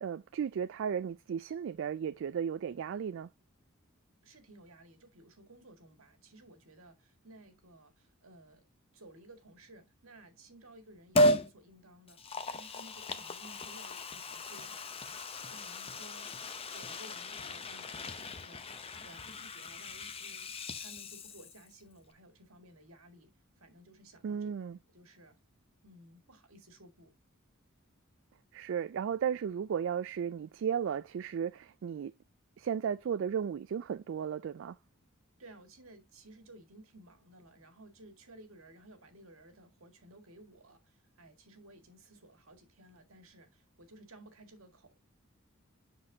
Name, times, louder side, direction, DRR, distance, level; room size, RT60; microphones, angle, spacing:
voice 1, 0.0-3.3 24.2-24.8 28.5-32.1 32.6-34.8, right 7 dB, 60° right, 0.3 m, -35 dB
voice 2, 4.2-8.6 8.9-16.3 16.7-18.7 19.0-23.3 23.6-24.5 24.9-25.4 25.8-27.1 35.4-45.0, right 1 dB, 80° right, 1.9 m, -56 dB
Liquid, 11.1-11.5 12.1-21.7 22.0-22.1, equal, 30° left, 0.7 m, -35 dB
7.6 x 6.1 x 2.7 m
head